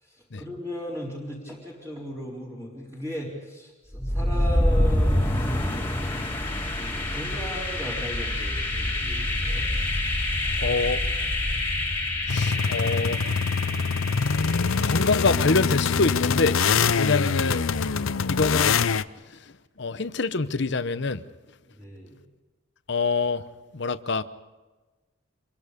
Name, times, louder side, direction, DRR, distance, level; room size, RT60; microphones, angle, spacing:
voice 1, 0.0-5.9 6.7-9.7 21.8-22.2, equal, 10° right, 4.1 m, -37 dB
sound 1, 3.9-15.8, left 1 dB, 10° left, 2.9 m, -27 dB
voice 2, 10.6-11.0 12.3-13.2 14.8-17.6 18.3-18.8 19.8-21.2 22.9-23.4 23.7-24.2, left 3 dB, 60° left, 0.9 m, -25 dB
sound 2, 12.3-19.0, left 5 dB, 85° left, 0.7 m, -24 dB
26.5 x 22.5 x 5.2 m
head